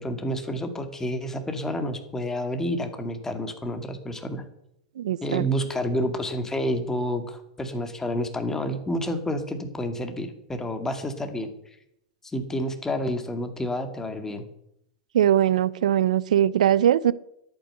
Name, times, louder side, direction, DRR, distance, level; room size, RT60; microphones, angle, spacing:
voice 1, 0.0-4.4 5.2-11.5 12.3-14.5, equal, 10° left, 7 dB, 2.2 m, -29 dB
voice 2, 5.0-5.4 15.1-17.1, right 11 dB, 70° right, 19 dB, 0.7 m, -21 dB
11.5 x 9.1 x 7.9 m, 0.78 s
hypercardioid pair, 105°, 4 cm